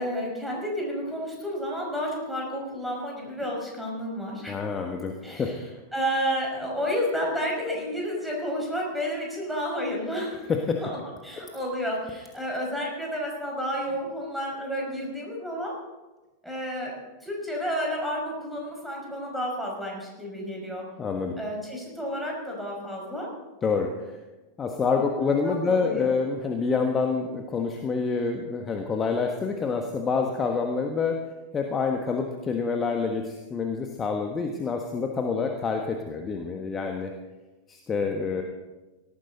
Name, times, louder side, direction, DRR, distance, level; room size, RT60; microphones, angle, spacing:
voice 1, 0.0-4.6 5.2-5.6 5.9-10.5 10.8-15.7 16.4-17.0 17.2-20.8 21.4-23.3 25.2-26.1, equal, ahead, -2 dB, 5.6 m, -31 dB
voice 2, 4.5-5.5 10.5-10.8 21.0-21.4 23.6-24.2 24.6-31.2 31.5-37.1 37.7-38.4, left 5 dB, 20° left, 3 dB, 1.3 m, -27 dB
18.0 x 14.0 x 4.0 m, 1.1 s
figure-of-eight pair, 90°, 0 cm